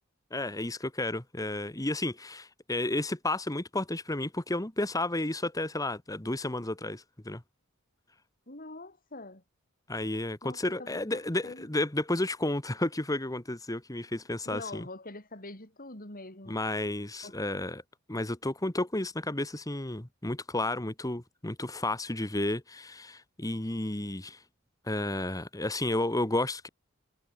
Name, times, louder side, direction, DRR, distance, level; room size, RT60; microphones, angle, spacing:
voice 1, 0.3-7.4 9.9-14.9 16.5-17.8 18.1-24.4 24.9-26.7, left 2 dB, 15° left, 1.4 m, -32 dB
voice 2, 8.5-9.4 10.4-11.7 14.5-16.6 17.2-17.3, left 2 dB, 40° left, 7.8 m, -44 dB
head